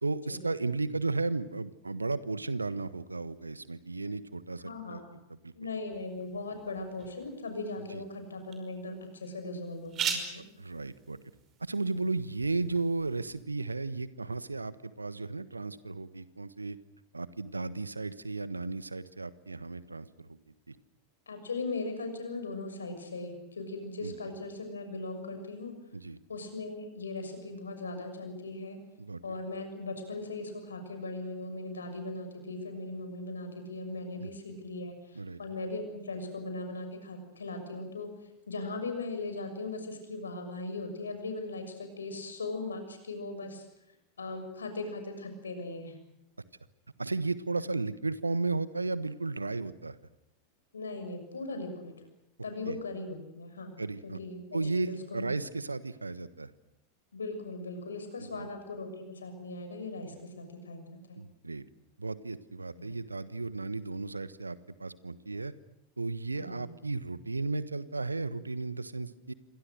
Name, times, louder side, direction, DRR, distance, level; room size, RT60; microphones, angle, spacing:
voice 1, 0.0-5.0 5.4-5.5 7.9-8.0 10.4-11.2 11.6-16.8 17.1-20.8 24.0-24.1 25.9-26.2 29.0-29.4 34.1-34.3 35.1-35.4 47.0-50.0 52.6-52.8 53.8-54.2 54.5-56.5 58.2-58.5 60.1-60.2 61.2-61.6 62.0-65.5 66.0-69.3, right 3 dB, 80° right, 16 dB, 1.2 m, -34 dB
voice 2, 4.6-5.0 5.5-10.4 11.9-12.0 21.3-25.7 26.3-28.8 29.2-38.1 38.5-43.7 44.2-45.9 50.7-51.9 52.4-53.7 54.0-55.3 57.1-61.2 62.8-62.9 66.3-66.6, left 2 dB, 70° left, 7 dB, 6.6 m, -39 dB
sound 1, 5.9-13.4, right 7 dB, 30° right, 5.7 m, -42 dB
28.5 x 25.0 x 6.5 m, 0.85 s
figure-of-eight pair, 90°, 0 cm